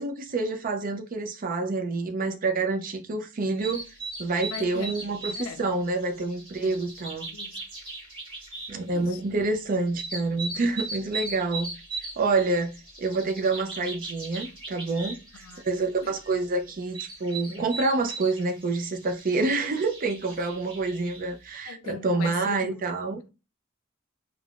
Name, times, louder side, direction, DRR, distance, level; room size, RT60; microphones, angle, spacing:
voice 1, 0.0-3.8 4.2-7.2 8.7-11.7 12.2-23.2, right 3 dB, 40° right, 0.5 m, -27 dB
sound 1, 3.6-21.3, right 3 dB, 25° right, 1.4 m, -39 dB
voice 2, 4.5-5.6 6.6-6.8 7.3-7.6 8.8-9.2 10.5-10.6 15.3-16.1 21.7-22.9, left 7 dB, 75° left, 0.3 m, -41 dB
3.4 x 2.1 x 2.4 m
head